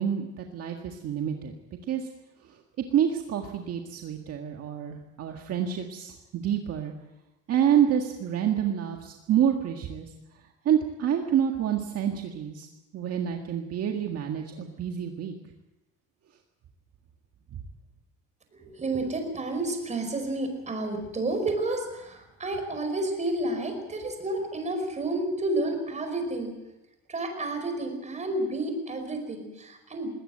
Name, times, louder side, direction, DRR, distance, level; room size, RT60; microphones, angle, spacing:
voice 1, 0.0-1.5 1.9-2.1 2.5-2.6 2.9-6.9 7.5-10.1 10.7-12.7 12.9-15.4 17.5-17.6, right 9 dB, 50° right, 3 dB, 1.9 m, -27 dB
voice 2, 18.5-26.5 27.1-30.1, right 2 dB, 20° right, 6 dB, 5.1 m, -30 dB
21.0 x 18.0 x 7.8 m, 0.99 s
cardioid pair, 130°, 31 cm